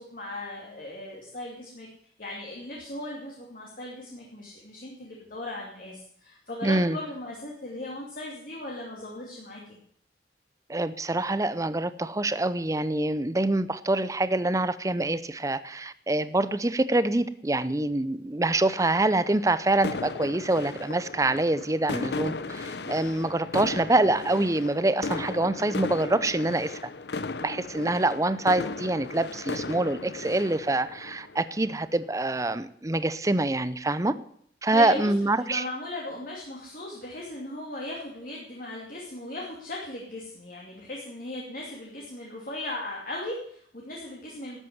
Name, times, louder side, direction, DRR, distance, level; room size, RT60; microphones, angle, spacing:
voice 1, 0.0-1.9 2.2-9.8 34.7-35.1 35.4-44.6, left 1 dB, 50° left, -2 dB, 2.6 m, -37 dB
voice 2, 6.6-7.0 10.7-26.9 27.4-34.1 34.6-35.7, right 2 dB, 20° right, 15 dB, 0.6 m, -25 dB
sound 1, 18.7-32.3, left 3 dB, 70° left, 0.7 m, -36 dB
13.0 x 8.2 x 9.4 m, 0.64 s
head